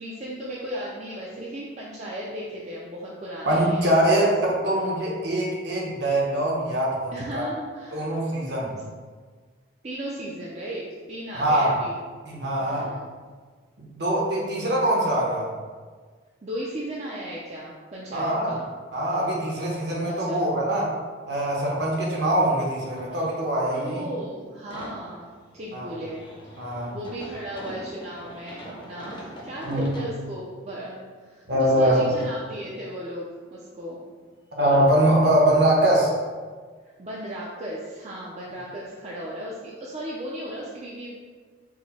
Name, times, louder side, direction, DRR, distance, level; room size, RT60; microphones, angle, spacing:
voice 1, 0.0-4.2 7.1-8.0 9.8-12.0 12.6-13.0 16.4-18.7 20.3-20.4 23.7-26.2 26.9-34.0 37.0-41.1, right 1 dB, 35° right, -5 dB, 0.4 m, -36 dB
voice 2, 3.4-4.3 4.6-7.5 7.9-8.7 11.3-11.8 12.3-12.9 13.8-15.5 18.1-18.6 18.9-20.9 21.3-24.1 25.7-25.9 26.6-26.9 29.6-29.9 31.5-32.0 34.6-36.1, right 1 dB, 55° right, -3 dB, 1.0 m, -23 dB
sound 1, 22.1-23.8 24.2-30.2 30.8-30.9 31.6-31.8 32.0-32.4 34.1-34.2 34.6-34.7, equal, 25° left, 0.6 m, -43 dB
4.7 x 2.1 x 4.1 m, 1.5 s
head